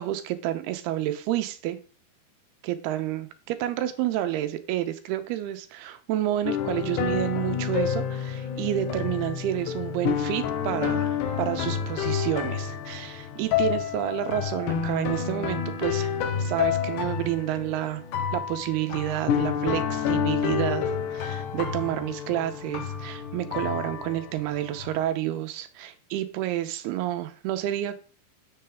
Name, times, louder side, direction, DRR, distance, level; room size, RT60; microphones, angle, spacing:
voice 1, 0.0-1.8 2.6-18.0 18.3-28.0, right 13 dB, 85° right, 9 dB, 2.6 m, -29 dB
sound 1, 6.4-25.0, left 8 dB, 75° left, 1.9 m, -29 dB
7.7 x 6.7 x 3.5 m, 0.39 s
omnidirectional pair, 4.6 m